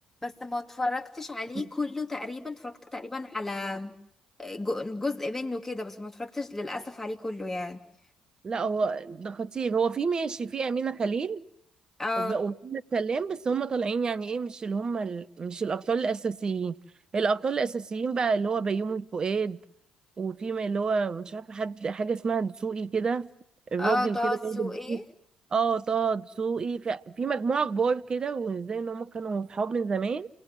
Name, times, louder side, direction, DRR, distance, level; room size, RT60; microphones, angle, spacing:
voice 1, 0.2-3.9 4.4-7.8 12.0-12.4 23.8-25.0, left 2 dB, 10° left, 2.9 m, -32 dB
voice 2, 8.4-11.4 12.2-16.7 17.1-19.6 20.2-23.3 23.7-25.0 25.5-30.3, right 5 dB, 40° right, 1.0 m, -29 dB
29.0 x 20.0 x 7.6 m
hypercardioid pair, 50°, 2 cm